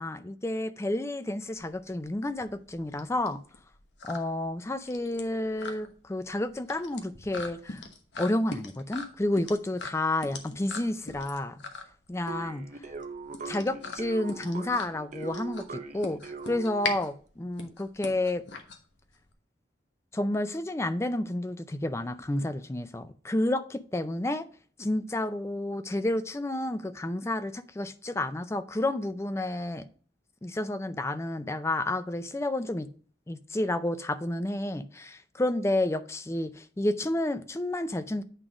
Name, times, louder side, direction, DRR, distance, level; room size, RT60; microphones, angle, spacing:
voice 1, 0.0-3.4 4.0-7.8 8.2-11.6 12.1-12.7 13.5-18.4 20.1-24.5 24.8-29.9 30.4-32.9 33.3-38.2, left 1 dB, 15° left, 0.4 m, -30 dB
sound 1, 1.5-19.3, left 4 dB, 85° left, 1.1 m, -41 dB
sound 2, 12.3-17.1, right 4 dB, 45° right, 0.7 m, -41 dB
8.9 x 3.7 x 4.9 m
head